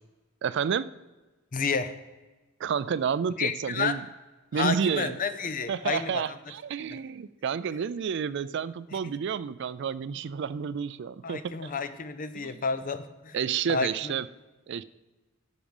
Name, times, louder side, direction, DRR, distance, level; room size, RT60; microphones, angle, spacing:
voice 1, 0.4-0.9 2.6-4.1 4.5-5.2 5.7-11.7 12.3-12.6 13.3-14.3 14.7-14.8, right 7 dB, 60° right, 16 dB, 0.4 m, -30 dB
voice 2, 1.5-1.9 3.4-4.0 4.5-6.2 6.9-7.0 11.2-13.4 13.7-14.2, left 5 dB, 40° left, 11 dB, 0.6 m, -30 dB
13.5 x 5.1 x 5.4 m, 1.2 s
head